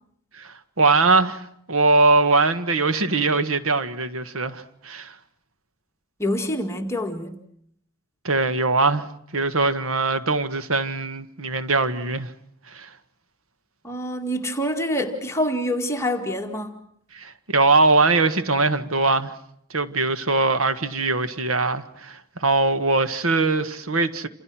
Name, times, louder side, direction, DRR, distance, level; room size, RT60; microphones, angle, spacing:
voice 1, 0.3-5.1 8.2-9.1 9.3-12.3 12.7-12.9 17.1-19.3 19.7-24.3, right 3 dB, 65° right, 1.6 m, -21 dB
voice 2, 6.2-7.4 13.8-16.8, equal, 10° left, 2.0 m, -26 dB
29.5 x 27.5 x 6.1 m
head